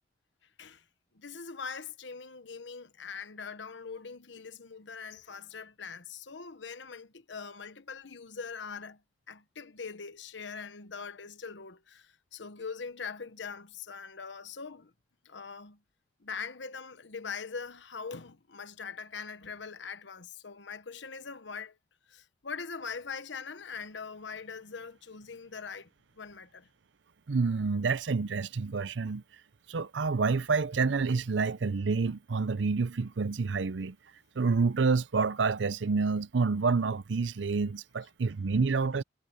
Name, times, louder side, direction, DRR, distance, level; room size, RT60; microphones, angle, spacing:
voice 1, 1.1-9.0 9.3-14.9 15.2-15.8 16.2-21.8 22.1-25.9 26.1-26.7, left 5 dB, 75° left, 1.1 m, -42 dB
voice 2, 27.3-29.2 29.7-34.0 34.4-39.0, right 4 dB, 75° right, 0.6 m, -28 dB
head